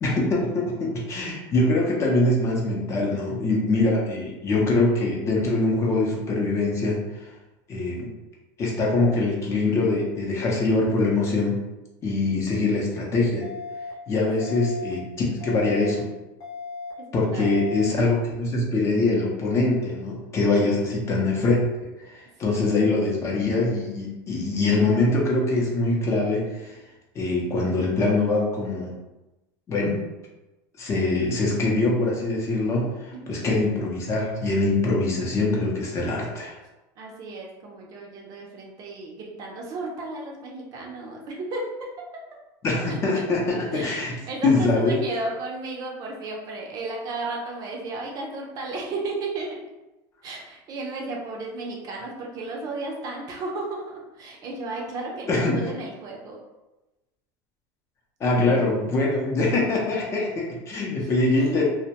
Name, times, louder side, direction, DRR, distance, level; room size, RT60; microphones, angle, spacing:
voice 1, 0.0-7.3 7.7-8.1 8.6-11.6 12.0-13.5 14.1-16.1 17.1-21.7 22.0-26.8 27.1-28.9 29.7-30.0 30.8-36.6 42.6-44.1 44.4-45.0 55.3-55.6 58.2-61.6, left 2 dB, 30° left, -2 dB, 0.6 m, -23 dB
sound 1, 13.4-13.9 14.4-14.9 15.4-15.9 16.4-16.9 17.4-17.9, left 4 dB, 75° left, 0.8 m, -36 dB
voice 2, 17.0-17.5 22.4-22.6 33.1-33.5 37.0-41.9 42.9-43.2 43.7-49.7 50.2-56.4 61.0-61.6, right 2 dB, 40° right, -1 dB, 0.5 m, -34 dB
2.2 x 2.1 x 2.8 m, 1.0 s
supercardioid pair, 135°, 10 cm